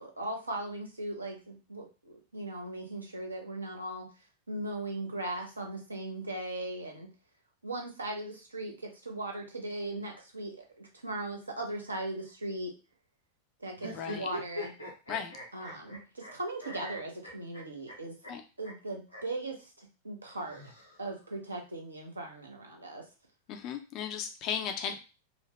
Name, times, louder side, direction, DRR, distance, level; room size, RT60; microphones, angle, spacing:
voice 1, 0.0-4.1 4.5-7.1 7.6-12.7 13.6-14.7 15.5-18.1 18.6-20.7 21.0-23.0, right 2 dB, 80° right, 2 dB, 0.7 m, -38 dB
sound 1, 13.8-16.3 16.6-17.9 18.2-18.3 18.6-18.7 19.1-19.2 20.3-21.3, left 1 dB, 85° left, 0.8 m, -42 dB
voice 2, 13.8-14.3 15.1-15.4 18.3-18.4 23.5-24.9, left 7 dB, 40° left, 6 dB, 0.4 m, -36 dB
3.0 x 2.0 x 3.0 m, 0.32 s
figure-of-eight pair, 90°, 0 cm